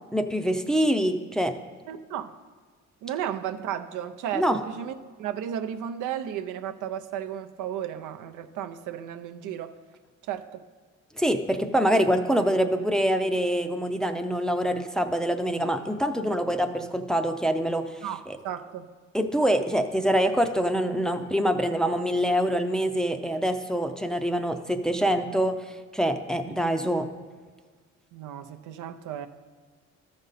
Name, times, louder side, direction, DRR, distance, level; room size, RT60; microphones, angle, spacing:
voice 1, 0.1-1.6 4.3-4.6 11.1-18.4 19.1-27.1, equal, ahead, 6 dB, 0.5 m, -25 dB
voice 2, 1.9-2.3 3.0-9.8 10.2-10.6 18.0-18.9 26.5-26.9 28.1-29.3, right 10 dB, 85° right, 7 dB, 0.6 m, -34 dB
13.5 x 5.2 x 4.1 m, 1.5 s
cardioid pair, 90°, 30 cm